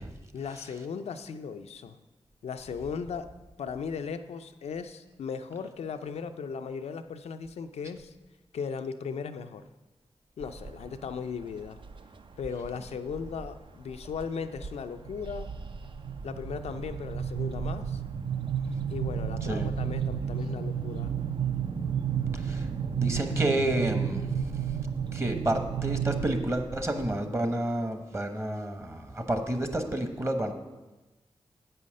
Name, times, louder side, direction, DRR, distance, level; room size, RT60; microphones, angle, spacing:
voice 1, 0.3-2.0 2.4-3.3 3.6-8.1 8.5-9.6 10.4-11.8 12.4-15.5 16.2-18.0 18.9-21.1, left 6 dB, 90° left, 8 dB, 0.4 m, -37 dB
sound 1, 10.4-11.0 11.4-12.0 12.6-13.5 13.9-14.2 14.6-27.1, right 7 dB, 55° right, 0.5 m, -32 dB
voice 2, 22.3-22.7 23.0-24.5 25.1-30.5, right 1 dB, 25° right, 6 dB, 1.1 m, -30 dB
8.2 x 5.6 x 6.4 m, 1.1 s
cardioid pair, 60°, 11 cm